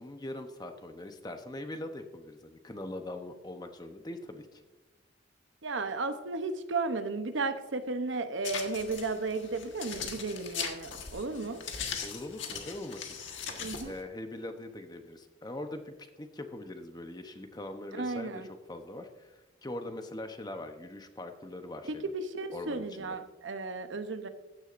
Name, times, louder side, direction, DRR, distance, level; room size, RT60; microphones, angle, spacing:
voice 1, 0.0-4.6 12.0-13.2 13.8-22.1 22.5-23.2, left 1 dB, 20° left, 7 dB, 0.8 m, -42 dB
voice 2, 5.6-11.6 13.6-13.9 17.9-18.5 21.8-24.3, right 3 dB, 80° right, 9 dB, 0.8 m, -34 dB
sound 1, 8.4-14.0, left 6 dB, 80° left, 1.4 m, -40 dB
15.0 x 9.7 x 2.6 m, 1.1 s
head